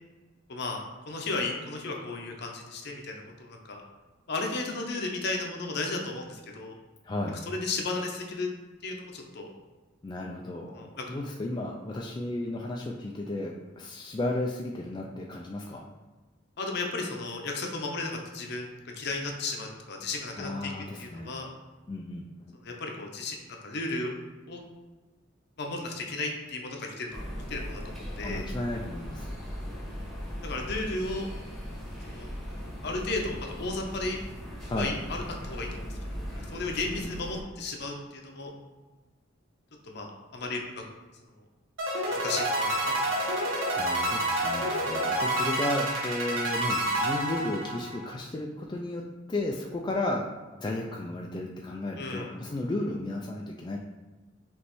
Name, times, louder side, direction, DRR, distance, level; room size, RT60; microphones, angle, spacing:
voice 1, 0.5-3.8 4.3-6.8 7.5-8.5 8.8-9.5 10.8-11.0 16.6-20.7 21.0-21.5 22.6-24.1 24.5-24.6 25.6-28.5 30.4-31.3 32.1-32.3 32.8-34.2 34.8-35.9 36.1-36.3 36.5-38.5 39.8-40.8 42.1-43.1 52.0-52.3, left 3 dB, 60° left, 2 dB, 0.7 m, -34 dB
voice 2, 7.0-7.4 10.0-15.8 20.4-21.3 21.9-22.6 28.2-29.3 34.7-34.9 36.8-37.2 43.7-50.2 50.6-53.8, left 1 dB, 25° left, -1 dB, 0.3 m, -34 dB
sound 1, 27.1-37.4, equal, ahead, 0.9 m, -38 dB
sound 2, 41.8-48.1, right 1 dB, 85° right, 1.1 m, -28 dB
5.2 x 3.1 x 3.1 m, 1.3 s
head